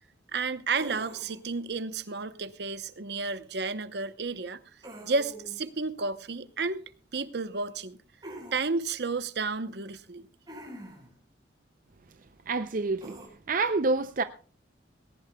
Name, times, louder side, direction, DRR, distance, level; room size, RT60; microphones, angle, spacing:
voice 1, 0.3-4.6 5.0-6.8 7.1-8.0 8.5-10.3, right 4 dB, 65° right, 0.9 m, -32 dB
sound 1, 0.8-1.5 4.8-5.6 8.2-8.6 10.5-11.1 13.0-13.3, right 1 dB, 25° right, 4.7 m, -44 dB
voice 2, 12.5-13.1 13.5-14.2, right 3 dB, 45° right, 0.5 m, -27 dB
19.5 x 17.5 x 2.3 m
head